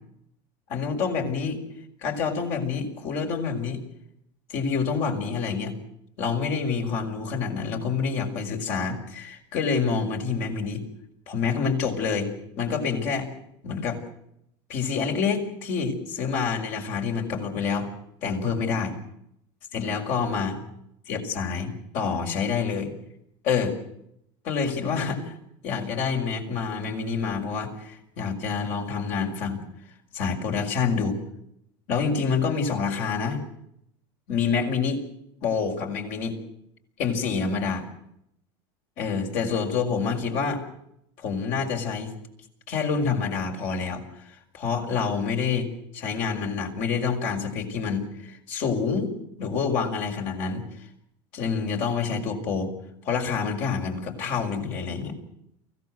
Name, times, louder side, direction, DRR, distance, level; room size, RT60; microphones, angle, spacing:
voice 1, 0.7-1.6 2.0-3.8 4.5-5.7 6.2-10.8 11.3-13.3 13.6-14.0 14.7-17.9 18.2-18.9 19.7-20.6 21.1-22.9 23.4-23.7 24.4-25.3 25.6-29.7 30.1-31.2 31.9-33.4 34.3-35.0 35.4-36.4 37.0-37.9 39.0-40.6 41.2-42.1 42.7-45.7 45.9-49.1 49.4-50.6 51.3-52.7 53.0-55.2, left 5 dB, 60° left, 3 dB, 5.8 m, -27 dB
24.0 x 17.0 x 7.9 m, 0.75 s
supercardioid pair, 110°, 14 cm